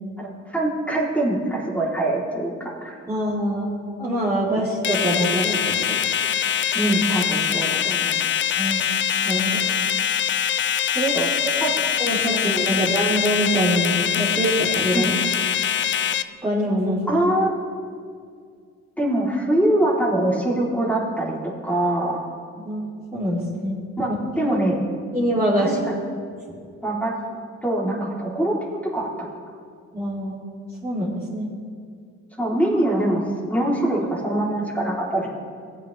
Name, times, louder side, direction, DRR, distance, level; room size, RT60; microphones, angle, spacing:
voice 1, 0.2-3.0 6.7-8.2 11.1-11.3 11.6-11.9 12.7-12.8 14.9-15.0 17.1-17.5 19.0-22.3 24.0-24.1 24.4-24.8 25.6-25.7 26.8-29.1 31.3-31.5 32.4-33.2 33.5-35.3, right 1 dB, 5° left, -4 dB, 3.0 m, -23 dB
voice 2, 3.1-5.9 8.6-8.8 9.2-9.6 10.9-11.1 11.4-11.5 12.0-15.1 16.4-17.0 22.6-23.8 24.1-24.6 25.1-25.7 29.9-30.3 30.8-31.5, right 1 dB, 10° right, -11 dB, 2.7 m, -24 dB
sound 1, 4.8-16.2, left 9 dB, 40° left, 0.5 m, -23 dB
18.5 x 8.7 x 3.2 m, 2.2 s
cardioid pair, 90°, 30 cm